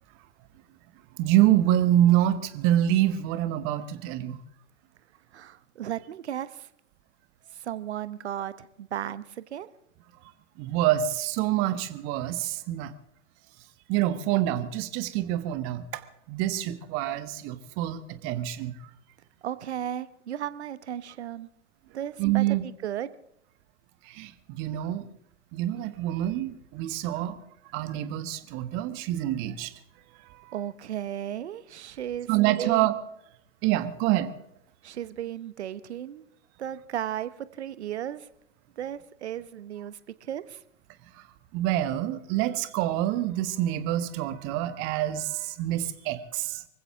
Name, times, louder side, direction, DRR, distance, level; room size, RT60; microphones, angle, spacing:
voice 1, 1.2-4.4 10.6-12.9 13.9-15.9 16.3-18.7 22.2-22.6 24.1-25.0 25.5-27.4 27.7-29.7 30.3-30.5 32.3-32.9 33.6-34.3 41.5-46.6, right 13 dB, 35° right, 12 dB, 1.4 m, -26 dB
voice 2, 5.3-6.7 7.5-9.7 19.4-21.5 21.9-23.1 30.5-32.3 32.6-32.9 34.8-36.2 36.6-38.3 38.8-40.6, right 10 dB, 60° right, 15 dB, 1.1 m, -35 dB
25.0 x 15.5 x 3.7 m, 0.76 s
figure-of-eight pair, 105°, 38 cm